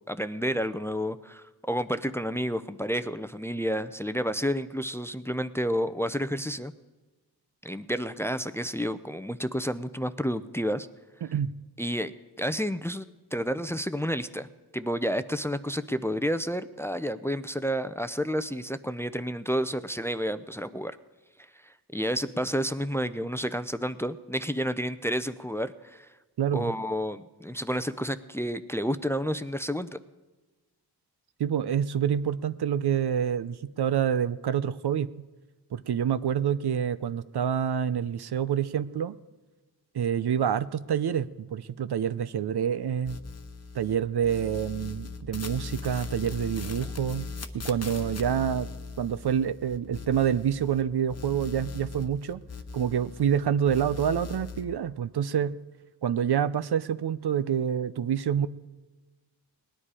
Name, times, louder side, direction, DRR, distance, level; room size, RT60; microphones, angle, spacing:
voice 1, 0.1-6.7 7.6-10.9 11.8-14.5 14.7-21.0 21.6-26.1 26.5-30.0, equal, 5° left, 12 dB, 0.5 m, -30 dB
voice 2, 11.2-11.5 26.4-26.7 31.4-35.1 35.7-39.1 39.9-43.2 43.7-48.7 49.0-52.4 52.7-55.6 56.0-58.5, right 8 dB, 70° right, 14 dB, 0.6 m, -27 dB
sound 1, 43.1-44.0 44.2-50.8 51.1-53.4 53.6-54.6, left 4 dB, 40° left, 1.0 m, -39 dB
19.0 x 10.0 x 4.9 m, 1.2 s
cardioid pair, 60°, 41 cm